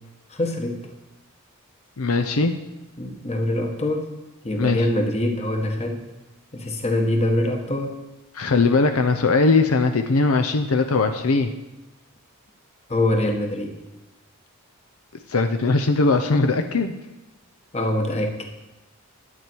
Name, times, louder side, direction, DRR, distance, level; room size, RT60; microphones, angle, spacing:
voice 1, 0.3-0.8 3.0-4.1 4.4-6.0 6.5-8.0 12.9-13.8 17.7-18.5, left 1 dB, 30° left, 4 dB, 1.3 m, -24 dB
voice 2, 2.0-2.5 4.6-4.9 8.3-11.5 15.3-16.9, left 3 dB, 70° left, 6 dB, 0.7 m, -20 dB
11.5 x 8.9 x 4.6 m, 0.97 s
head